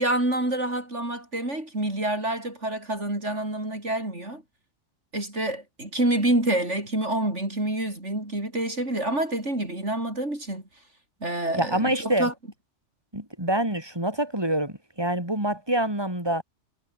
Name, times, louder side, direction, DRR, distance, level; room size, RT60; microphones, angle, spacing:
voice 1, 0.0-4.4 5.1-10.6 11.2-12.3, right 1 dB, 75° right, 7.4 m, -27 dB
voice 2, 11.5-12.3 13.1-16.4, right 1 dB, 20° right, 6.7 m, -26 dB
omnidirectional pair, 1.2 m